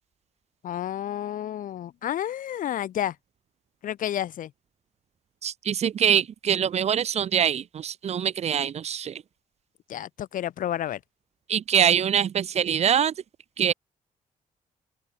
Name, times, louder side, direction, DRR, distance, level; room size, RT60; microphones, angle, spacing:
voice 1, 0.6-3.1 3.8-4.5 9.9-11.0, left 11 dB, 70° left, 3.4 m, -30 dB
voice 2, 5.4-9.2 11.5-13.1 13.6-13.7, right 8 dB, 50° right, 3.6 m, -24 dB
open air
wide cardioid pair, 170°, 14 cm